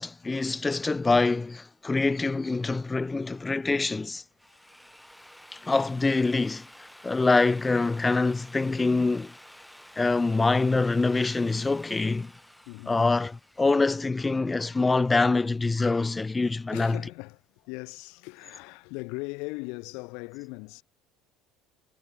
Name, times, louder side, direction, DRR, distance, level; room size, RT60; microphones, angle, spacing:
voice 1, 0.0-4.2 5.5-6.7 7.0-9.3 10.0-12.3 12.9-17.0, left 3 dB, 20° left, 0.4 m, -25 dB
Drill, 4.2-14.0, equal, 5° left, 3.1 m, -51 dB
voice 2, 12.7-13.0 16.7-20.8, left 29 dB, 65° left, 2.2 m, -39 dB
hypercardioid pair, 65°, 0 cm